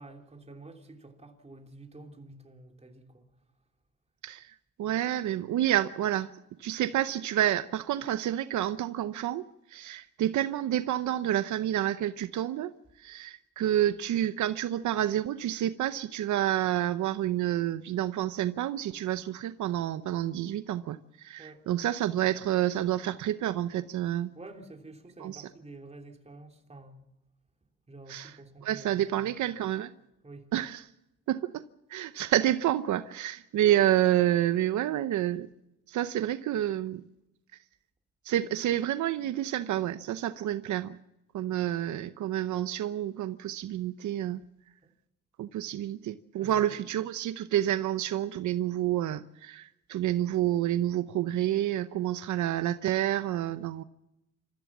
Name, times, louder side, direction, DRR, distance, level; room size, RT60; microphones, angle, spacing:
voice 1, 0.0-3.2 21.4-21.6 24.3-27.0 27.9-29.5 30.2-30.5 44.8-44.9 46.4-46.8, right 2 dB, 20° right, 3.2 m, -49 dB
voice 2, 4.8-6.3 6.6-12.7 13.0-24.3 25.2-25.5 28.1-28.3 28.6-29.9 30.5-30.8 31.3-31.6 31.9-35.5 35.9-37.0 38.2-40.9 41.3-44.4 45.4-53.8, right 12 dB, 75° right, 0.8 m, -29 dB
27.0 x 15.0 x 7.3 m
cardioid pair, 90°, 30 cm